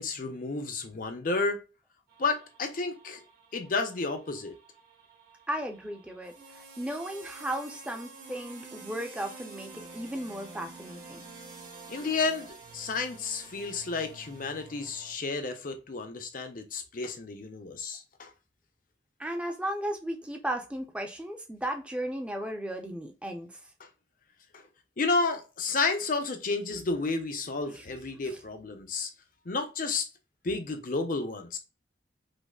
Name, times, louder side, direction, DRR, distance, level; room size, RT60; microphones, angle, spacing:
voice 1, 0.0-1.6 2.2-3.2 3.5-4.5 11.9-12.5 12.7-18.3 24.5-24.6 25.0-29.1 29.5-30.1 30.4-31.6, left 3 dB, 45° left, 0.6 m, -31 dB
sound 1, 2.1-15.1, right 3 dB, 55° right, 1.4 m, -49 dB
voice 2, 5.5-11.2 19.2-23.6 27.7-27.9 28.2-28.4, right 1 dB, 5° right, 0.5 m, -35 dB
5.1 x 2.0 x 2.3 m
head